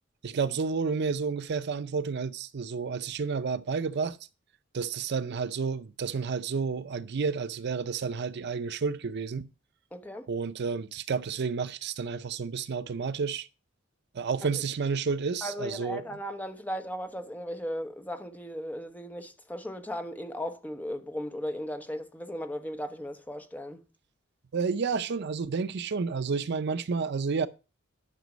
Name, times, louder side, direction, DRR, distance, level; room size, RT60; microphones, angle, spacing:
voice 1, 0.2-4.2 4.7-9.5 10.3-13.5 14.1-16.0 24.5-27.5, right 5 dB, 55° right, 0.5 m, -30 dB
voice 2, 9.9-10.3 15.4-23.8, equal, 10° left, 1.0 m, -36 dB
11.0 x 6.1 x 5.1 m
head